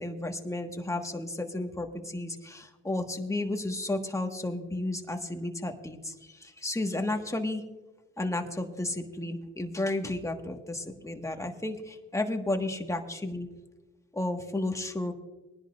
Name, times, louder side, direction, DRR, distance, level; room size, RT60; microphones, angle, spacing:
voice 1, 0.0-7.6 8.2-13.5 14.1-15.1, left 2 dB, 10° left, 4 dB, 1.5 m, -32 dB
21.5 x 10.5 x 2.5 m, 1.2 s
cardioid pair, 90°, 30 cm